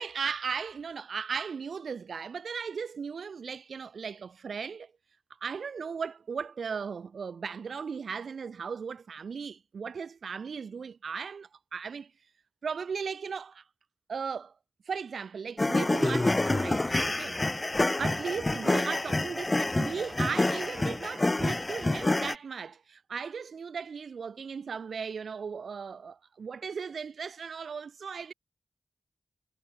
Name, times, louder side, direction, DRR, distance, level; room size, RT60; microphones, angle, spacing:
voice 1, 0.0-4.9 5.4-12.1 12.6-13.6 14.1-14.5 14.9-17.4 18.0-28.3, right 6 dB, 75° right, 0.4 m, -37 dB
sound 1, 15.6-22.3, left 2 dB, 25° left, 0.4 m, -27 dB
wide cardioid pair, 90°, 0 cm